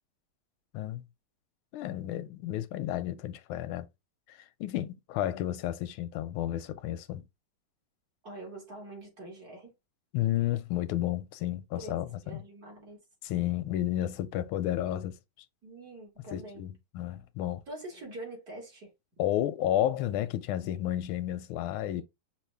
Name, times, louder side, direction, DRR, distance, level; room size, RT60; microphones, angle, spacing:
voice 1, 0.7-1.1 1.7-3.9 4.3-7.2 10.1-12.4 13.2-15.2 16.3-17.6 19.2-22.0, left 12 dB, 90° left, 1.4 m, -32 dB
voice 2, 8.2-9.7 11.7-13.0 15.6-16.6 17.7-18.9 22.0-22.1, right 2 dB, 50° right, 2.9 m, -45 dB
5.6 x 2.7 x 3.4 m
omnidirectional pair, 2.2 m